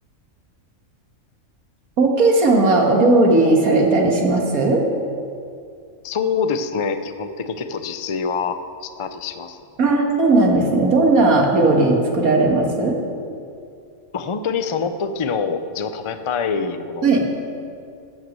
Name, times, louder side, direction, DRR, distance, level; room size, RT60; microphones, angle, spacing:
voice 1, 2.0-4.8 9.8-13.0 17.0-17.2, right 2 dB, 90° right, 0 dB, 2.1 m, -16 dB
voice 2, 6.0-9.6 14.1-17.1, left 5 dB, 55° left, 9 dB, 0.3 m, -25 dB
14.0 x 6.0 x 7.5 m, 2.4 s
omnidirectional pair, 1.5 m